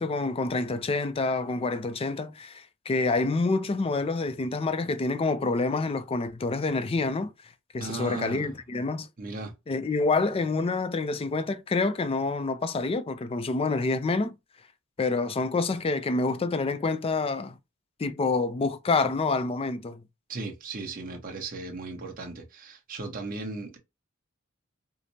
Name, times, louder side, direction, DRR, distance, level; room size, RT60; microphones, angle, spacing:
voice 1, 0.0-7.3 7.7-9.1 9.7-14.4 15.0-17.6 18.0-20.0, left 3 dB, 25° left, 0.4 m, -27 dB
voice 2, 7.8-8.6 9.2-9.5 20.3-23.8, right 3 dB, 40° right, 1.0 m, -36 dB
4.9 x 2.0 x 2.7 m
head